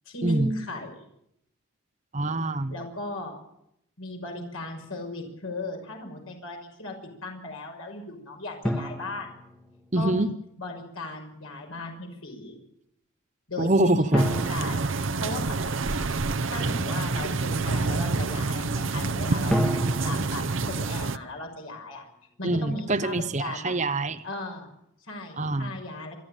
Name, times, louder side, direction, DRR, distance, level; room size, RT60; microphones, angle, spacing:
voice 1, 0.1-1.0 2.7-3.4 4.0-6.9 7.2-9.3 9.9-10.3 10.6-12.6 13.5-14.9 15.2-15.4 15.8-16.1 16.5-19.6 20.0-22.1 22.4-23.7 24.2-24.7 25.1-26.2, left 2 dB, 85° left, 2 dB, 6.0 m, -36 dB
voice 2, 2.1-2.7 9.9-10.3 13.6-14.2 22.4-24.2 25.4-25.7, right 2 dB, 35° right, 12 dB, 0.9 m, -25 dB
sound 1, 8.6-10.3 14.1-16.0 19.5-21.8, equal, 5° left, 1.9 m, -32 dB
sound 2, 14.2-21.2, right 3 dB, 65° right, 0.8 m, -27 dB
27.0 x 12.0 x 9.1 m, 0.77 s
head